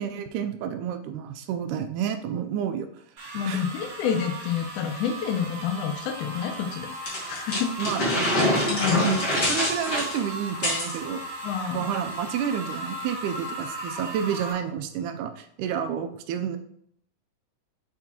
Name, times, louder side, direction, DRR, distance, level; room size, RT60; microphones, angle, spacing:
voice 1, 0.0-2.9 3.5-3.6 7.8-8.5 8.9-9.2 9.5-11.2 11.7-16.6, right 8 dB, 80° right, 7 dB, 2.0 m, -30 dB
sound 1, 3.2-14.5, right 1 dB, 45° right, 2.3 m, -37 dB
voice 2, 3.3-7.7 8.7-9.2 11.4-11.9, left 7 dB, 75° left, 5 dB, 1.9 m, -28 dB
sound 2, 7.1-11.0, left 1 dB, 40° left, 1.2 m, -25 dB
10.0 x 3.7 x 2.9 m, 0.68 s
omnidirectional pair, 3.8 m